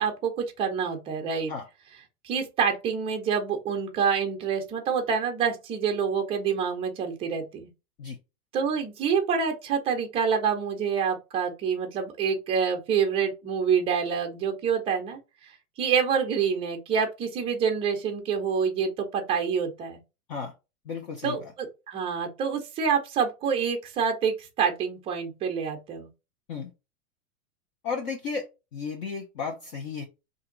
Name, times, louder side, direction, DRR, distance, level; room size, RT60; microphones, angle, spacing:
voice 1, 0.0-1.5 2.2-7.7 8.5-15.2 15.8-20.0 21.2-26.1, right 6 dB, 15° right, 0.5 m, -27 dB
voice 2, 20.9-21.5 26.5-26.7 27.8-30.0, left 5 dB, 35° left, 0.7 m, -34 dB
2.8 x 2.6 x 3.7 m
supercardioid pair, 150°, 44 cm